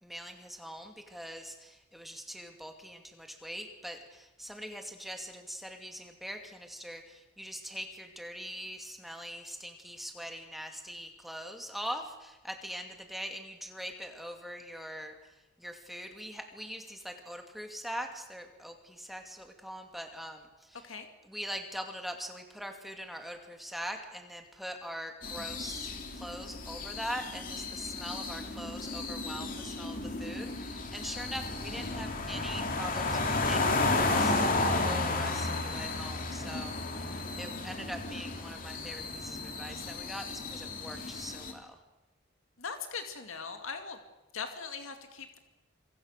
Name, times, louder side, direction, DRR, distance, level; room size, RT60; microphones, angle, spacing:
voice 1, 0.0-20.9 21.2-41.8, equal, ahead, 4 dB, 2.4 m, -42 dB
sound 1, 25.2-41.5, left 2 dB, 40° left, 2.8 m, -33 dB
voice 2, 42.6-44.0 44.3-45.4, left 5 dB, 75° left, 6 dB, 2.3 m, -40 dB
26.5 x 25.0 x 6.6 m, 0.98 s
head